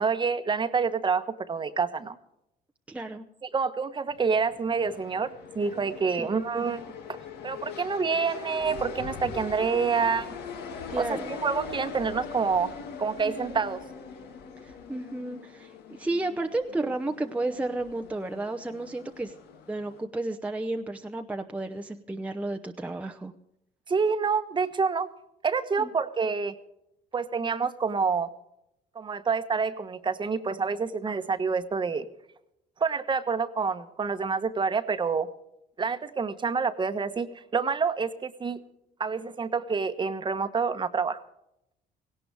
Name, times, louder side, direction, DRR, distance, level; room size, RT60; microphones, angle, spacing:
voice 1, 0.0-2.2 3.4-5.3 5.5-6.8 7.1-7.2 7.4-10.3 11.0-12.7 13.0-13.8 23.9-25.1 25.4-26.5 27.1-28.3 28.9-32.0 32.8-35.3 35.8-38.6 39.0-41.2, right 5 dB, 30° right, 10 dB, 1.2 m, -27 dB
voice 2, 2.9-3.2 6.1-6.3 10.9-11.3 14.6-19.3 19.7-23.3 25.8-25.9, right 2 dB, 10° right, 4 dB, 0.8 m, -32 dB
sound 1, 4.1-20.0, left 5 dB, 75° left, 2.2 m, -41 dB
17.5 x 17.5 x 3.5 m, 0.81 s
cardioid pair, 110°, 17 cm